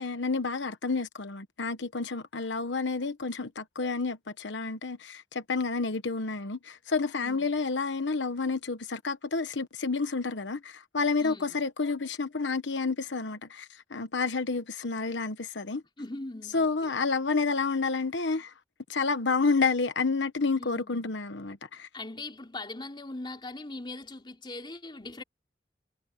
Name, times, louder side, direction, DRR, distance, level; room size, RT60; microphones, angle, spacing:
voice 1, 0.0-15.8 16.5-18.5 18.9-21.9, left 4 dB, 85° left, 1.1 m, -30 dB
voice 2, 7.2-7.5 11.2-11.6 16.0-17.0 20.6-21.1 21.9-25.2, left 2 dB, 25° left, 3.1 m, -41 dB
head